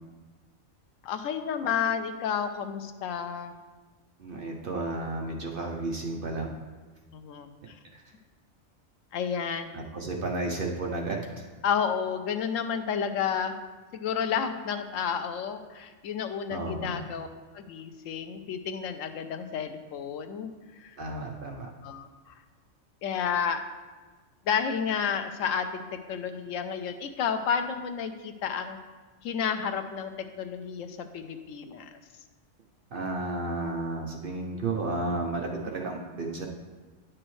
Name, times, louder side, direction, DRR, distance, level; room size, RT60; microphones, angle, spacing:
voice 1, 1.0-3.5 7.1-7.8 9.1-9.7 11.6-13.5 13.9-17.3 17.5-20.5 20.8-21.0 21.8-22.3 23.0-23.6 24.5-28.8 29.2-30.1 30.4-31.9, left 7 dB, 90° left, 8 dB, 1.0 m, -31 dB
voice 2, 4.2-6.5 9.7-11.2 16.5-17.0 21.0-21.7 32.9-36.4, right 2 dB, 50° right, 1 dB, 0.8 m, -32 dB
9.7 x 6.2 x 3.1 m, 1.3 s
omnidirectional pair, 1.3 m